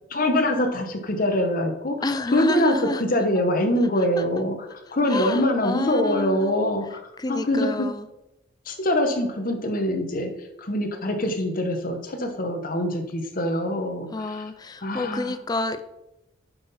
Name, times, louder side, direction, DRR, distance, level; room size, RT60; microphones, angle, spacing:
voice 1, 0.1-2.0 2.3-7.0 7.3-7.9 8.7-10.3 10.6-14.4 14.8-15.3, left 1 dB, 45° left, 1.1 m, -24 dB
voice 2, 2.0-3.0 3.4-3.5 4.2-4.3 5.1-6.6 7.2-8.1 14.1-15.8, left 2 dB, 20° left, 0.4 m, -29 dB
7.5 x 5.8 x 4.2 m
head